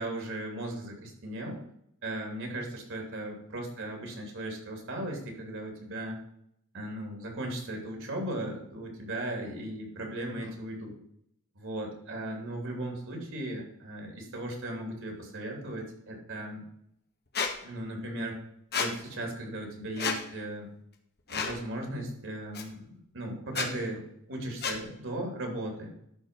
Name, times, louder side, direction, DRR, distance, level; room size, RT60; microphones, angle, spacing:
voice 1, 0.0-1.6 2.0-6.2 6.7-10.9 11.5-16.6 17.6-18.4 18.7-20.7 21.3-25.9, right 1 dB, 60° right, 1 dB, 3.0 m, -37 dB
Squeak, 17.3-17.5 18.7-18.9 20.0-20.2 21.3-21.6 22.5-22.6 23.5-23.7 24.6-24.8, left 6 dB, 50° left, 1.3 m, -30 dB
12.5 x 4.4 x 5.3 m, 0.74 s
head